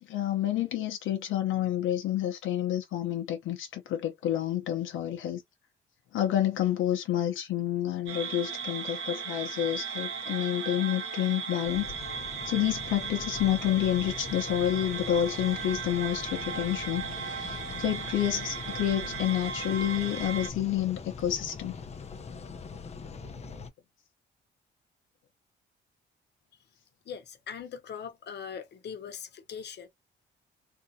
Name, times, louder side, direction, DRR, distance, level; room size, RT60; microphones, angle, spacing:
voice 1, 0.0-5.4 6.1-11.9 12.4-21.8, left 11 dB, 80° left, 0.8 m, -29 dB
sound 1, 8.1-20.5, right 6 dB, 85° right, 1.4 m, -37 dB
sound 2, 11.6-23.7, left 5 dB, 35° left, 0.7 m, -42 dB
voice 2, 27.0-29.9, left 7 dB, 60° left, 1.0 m, -41 dB
3.5 x 2.6 x 2.7 m
cardioid pair, 90°, 20 cm